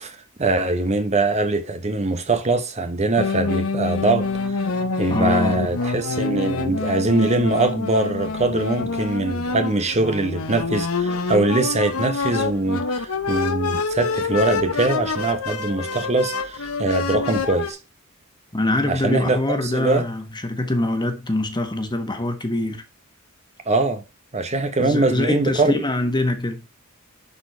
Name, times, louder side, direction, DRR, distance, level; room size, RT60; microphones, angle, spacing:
voice 1, 0.0-4.7 5.0-17.8 18.9-20.0 23.7-24.0 24.3-25.7, right 2 dB, 30° right, 0.9 m, -22 dB
sound 1, 3.2-17.7, left 4 dB, 85° left, 1.0 m, -26 dB
voice 2, 5.1-5.7 18.5-22.8 24.8-26.6, left 2 dB, 20° left, 1.4 m, -24 dB
11.0 x 4.6 x 4.5 m
head